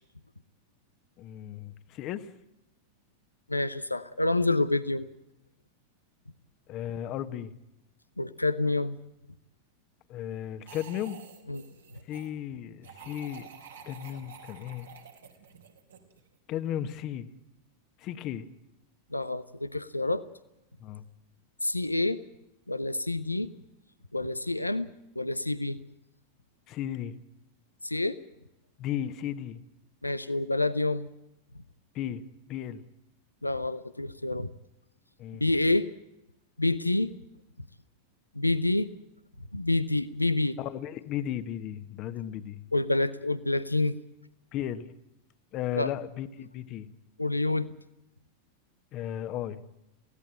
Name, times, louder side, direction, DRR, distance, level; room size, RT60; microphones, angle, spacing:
voice 1, 1.2-2.3 6.7-7.5 10.1-11.2 12.1-13.5 13.8-14.9 16.5-17.3 18.0-18.5 20.8-21.0 26.7-27.1 28.8-29.6 31.9-32.2 32.5-32.8 35.2-35.4 40.6-42.6 44.5-44.9 45.5-46.9 48.9-49.6, left 11 dB, 35° left, 12 dB, 1.4 m, -35 dB
voice 2, 3.5-5.1 8.2-9.0 11.5-11.6 19.1-20.3 21.6-22.2 22.7-23.5 24.1-25.8 27.8-28.2 30.0-31.1 33.4-34.5 35.4-35.9 36.6-37.1 38.3-38.9 39.5-40.6 42.7-44.0 45.8-45.9 47.2-47.7, left 2 dB, 85° left, 14 dB, 0.8 m, -28 dB
sound 1, 10.7-12.3 12.8-16.3, right 6 dB, 70° right, 3.9 m, -49 dB
23.0 x 16.5 x 8.9 m, 0.87 s
figure-of-eight pair, 90°, 0 cm